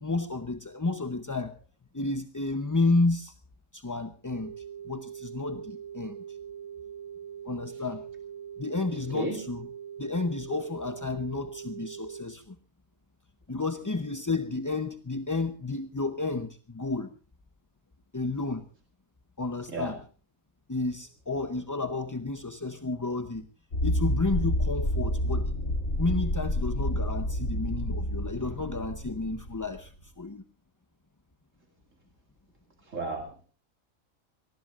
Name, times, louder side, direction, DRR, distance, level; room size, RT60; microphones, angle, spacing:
voice 1, 0.0-1.6 1.9-3.3 3.7-6.4 7.4-8.0 8.6-9.7 10.0-12.6 13.5-17.1 18.1-18.6 19.4-20.0 20.7-23.5 23.8-25.5 26.0-30.4, left 3 dB, 20° left, 0.6 m, -31 dB
sound 1, 4.3-12.2, right 8 dB, 45° right, 5.0 m, -42 dB
voice 2, 8.9-9.4 19.7-19.9 32.8-33.5, right 2 dB, 70° right, 2.8 m, -34 dB
sound 2, 23.7-29.9, equal, 80° left, 3.6 m, -29 dB
25.5 x 19.5 x 2.5 m
omnidirectional pair, 1.4 m